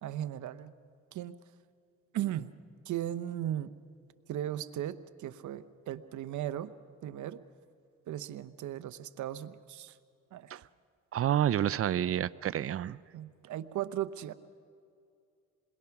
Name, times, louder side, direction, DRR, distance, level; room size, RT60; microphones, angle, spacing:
voice 1, 0.0-0.7 1.1-1.4 2.1-2.5 2.9-3.7 4.3-6.7 7.0-7.4 8.1-10.0 10.3-10.6 13.1-14.3, right 12 dB, 75° right, 13 dB, 0.9 m, -37 dB
voice 2, 11.1-13.0, right 11 dB, 50° right, 18 dB, 0.5 m, -29 dB
28.0 x 21.5 x 5.9 m, 2.4 s
cardioid pair, 90°, 30 cm